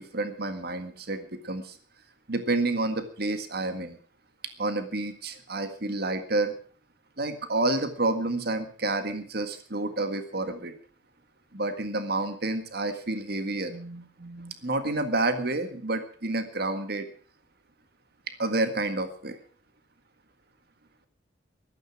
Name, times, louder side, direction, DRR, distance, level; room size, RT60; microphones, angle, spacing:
voice 1, 0.0-1.8 2.3-4.0 4.6-6.5 7.2-10.7 11.5-17.1 18.4-19.4, right 2 dB, 55° right, 9 dB, 1.8 m, -29 dB
15.0 x 13.5 x 6.1 m, 0.43 s
head